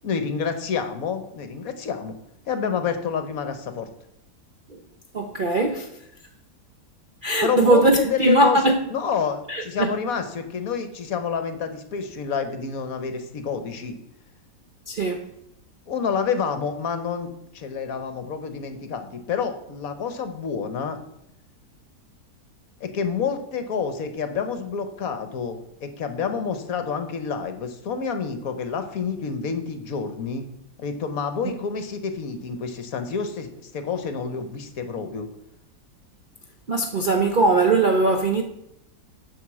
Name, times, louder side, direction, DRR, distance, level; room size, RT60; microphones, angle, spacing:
voice 1, 0.0-2.1 2.5-3.9 7.4-14.0 15.9-17.3 17.5-21.0 22.8-30.5 30.8-35.3, left 6 dB, 60° left, 1.3 m, -28 dB
voice 2, 5.1-5.9 7.2-8.8 9.5-10.0 14.9-15.3 36.7-38.4, right 2 dB, 50° right, 0.6 m, -20 dB
7.9 x 5.5 x 7.2 m
omnidirectional pair, 1.8 m